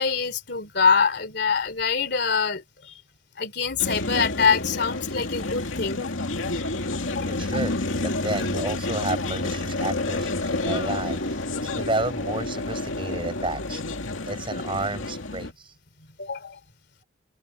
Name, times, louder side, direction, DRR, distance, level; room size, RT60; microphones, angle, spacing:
voice 1, 0.0-3.0 3.4-6.0 7.1-7.5 8.4-8.5 16.2-16.6, left 5 dB, 55° left, 3.3 m, -25 dB
sound 1, 3.8-15.5, left 2 dB, 85° left, 2.4 m, -29 dB
voice 2, 7.3-15.7, right 2 dB, 25° right, 7.2 m, -32 dB
open air
head